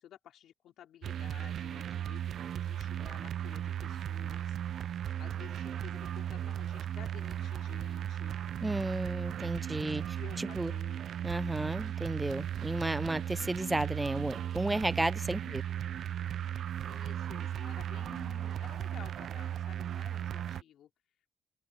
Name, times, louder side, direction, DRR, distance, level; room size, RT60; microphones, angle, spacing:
voice 1, 0.0-4.6 5.2-8.3 9.9-11.0 15.4-15.6 16.9-20.9, left 11 dB, 80° left, 3.4 m, -53 dB
sound 1, 1.0-20.6, right 10 dB, 65° right, 0.5 m, -36 dB
voice 2, 8.6-10.0 10.4-10.7 11.2-15.6, right 2 dB, 10° right, 0.7 m, -33 dB
open air
cardioid pair, 140°, 0 cm